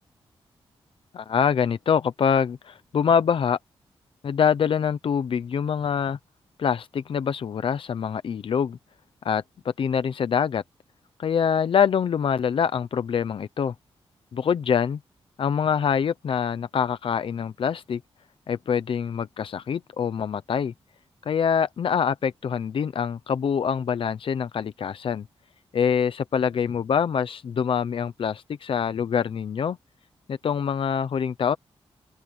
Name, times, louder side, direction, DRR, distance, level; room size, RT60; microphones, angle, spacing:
voice 1, 1.1-3.6 4.2-6.2 6.6-8.8 9.2-10.6 11.2-13.7 14.3-15.0 15.4-18.0 18.5-20.7 21.3-25.2 25.7-29.8 30.3-31.6, left 7 dB, 60° left, 0.9 m, -25 dB
open air
wide cardioid pair, 120°, 10 cm